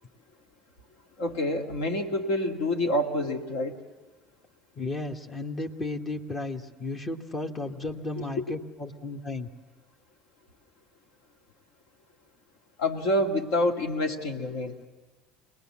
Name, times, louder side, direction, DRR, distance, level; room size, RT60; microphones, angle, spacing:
voice 1, 1.2-3.8 8.4-8.5 12.8-14.7, left 1 dB, 75° left, 3 dB, 1.9 m, -27 dB
voice 2, 4.8-9.5, left 2 dB, 35° left, 4 dB, 1.4 m, -34 dB
23.0 x 19.5 x 7.3 m, 1.3 s
hypercardioid pair, 75°, 0 cm